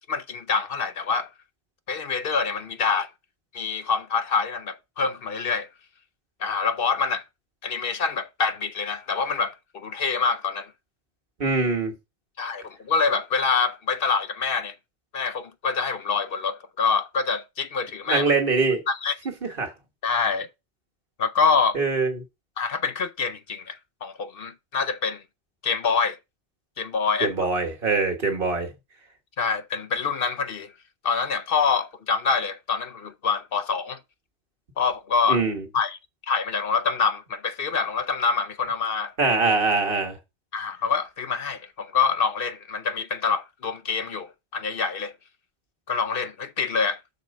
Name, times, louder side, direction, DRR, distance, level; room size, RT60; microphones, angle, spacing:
voice 1, 0.1-1.3 1.9-3.1 3.5-5.7 6.4-7.2 7.6-10.7 12.4-14.7 15.1-18.3 18.9-19.1 20.0-20.5 21.2-21.8 22.6-25.2 25.6-26.2 26.8-27.3 29.4-30.7 31.0-34.0 34.8-35.4 35.7-36.0 36.3-39.1 40.5-45.1 45.9-47.0, left 5 dB, 60° left, 0.9 m, -26 dB
voice 2, 11.4-11.9 18.1-18.8 19.6-19.7 21.7-22.2 27.2-28.7 35.3-35.6 39.2-40.2, right 3 dB, 55° right, 1.6 m, -23 dB
6.7 x 4.5 x 5.2 m
omnidirectional pair, 1.1 m